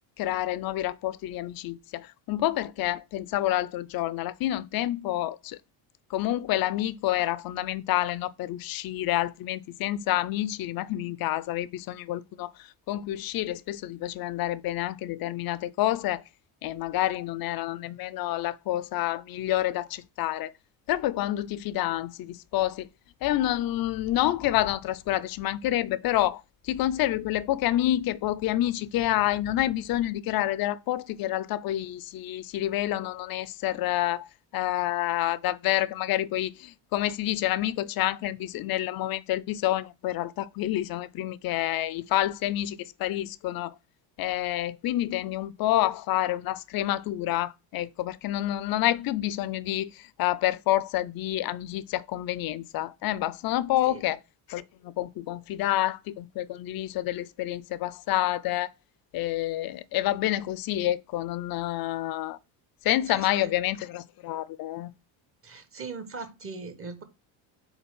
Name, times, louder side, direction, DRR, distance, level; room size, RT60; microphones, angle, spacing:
voice 1, 0.2-5.6 6.1-12.5 12.9-16.2 16.6-20.5 20.9-22.9 23.2-34.3 34.5-43.7 44.2-54.2 54.5-58.7 59.1-62.4 62.8-64.9, left 14 dB, 50° left, 0.5 m, -28 dB
voice 2, 63.0-63.5 65.4-67.0, right 4 dB, 25° right, 1.1 m, -40 dB
4.4 x 3.9 x 5.4 m
supercardioid pair, 95°, 48 cm